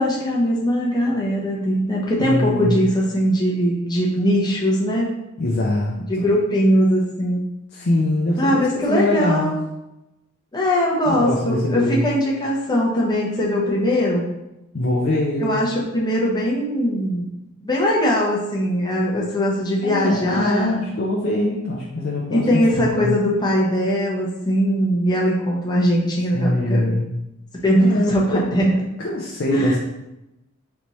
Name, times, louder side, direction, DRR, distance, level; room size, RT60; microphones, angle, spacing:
voice 1, 0.0-5.1 6.1-7.4 8.4-9.6 10.5-14.2 15.4-17.3 17.6-20.8 22.3-26.9 27.6-28.8 29.5-29.8, equal, 20° left, -3 dB, 0.8 m, -20 dB
voice 2, 2.2-2.8 5.4-6.3 7.7-9.5 11.0-12.0 14.7-15.6 19.8-23.1 26.3-27.1 27.8-28.4 29.0-29.8, left 1 dB, 50° left, -4 dB, 0.5 m, -23 dB
4.1 x 3.4 x 3.0 m, 0.91 s
head